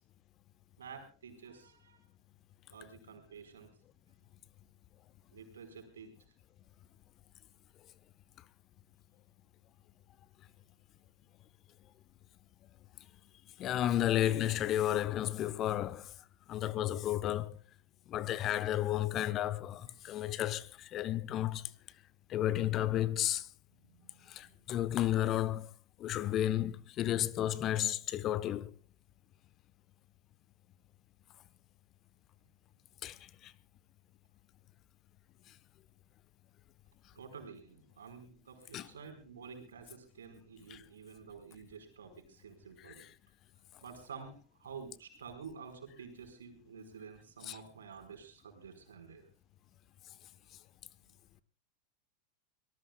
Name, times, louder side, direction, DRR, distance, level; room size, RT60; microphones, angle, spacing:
voice 1, 0.8-2.0 2.7-3.7 5.3-6.3 18.4-18.5 23.8-24.5 37.1-43.0 43.8-49.3 51.0-51.1, right 6 dB, 80° right, 4.9 m, -50 dB
voice 2, 13.6-16.1 16.5-17.6 18.1-21.7 22.3-23.5 24.3-25.7 26.0-28.7 33.0-33.2 33.4-33.5 38.7-38.9 40.7-40.8 42.8-43.1 47.4-47.6, left 12 dB, 40° left, 1.1 m, -32 dB
25.5 x 19.0 x 2.4 m
hypercardioid pair, 90°, 0 cm